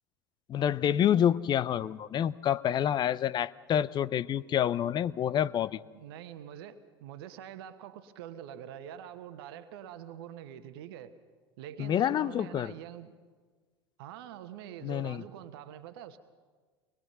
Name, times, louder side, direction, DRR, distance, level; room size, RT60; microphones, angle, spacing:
voice 1, 0.5-5.8 11.8-12.7 14.8-15.2, left 10 dB, 30° left, 17 dB, 0.6 m, -28 dB
voice 2, 5.9-11.1 11.6-13.2 14.0-16.2, right 10 dB, 60° right, 11 dB, 1.2 m, -45 dB
24.0 x 20.0 x 5.6 m, 1.4 s
figure-of-eight pair, 80°, 14 cm